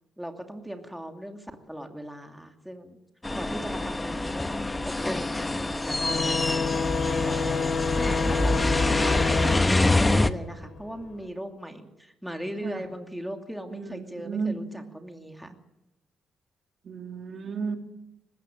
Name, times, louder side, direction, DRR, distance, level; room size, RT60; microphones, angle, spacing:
voice 1, 0.2-3.0 3.3-6.6 7.0-15.6, equal, ahead, 4 dB, 2.6 m, -38 dB
sound 1, 3.2-10.3, left 2 dB, 15° left, 1.1 m, -25 dB
sound 2, 6.0-11.1, left 5 dB, 60° left, 3.3 m, -29 dB
voice 2, 13.7-14.6 16.8-17.8, right 5 dB, 50° right, 4 dB, 2.8 m, -33 dB
20.0 x 16.5 x 8.8 m, 0.91 s
cardioid pair, 90°, 0 cm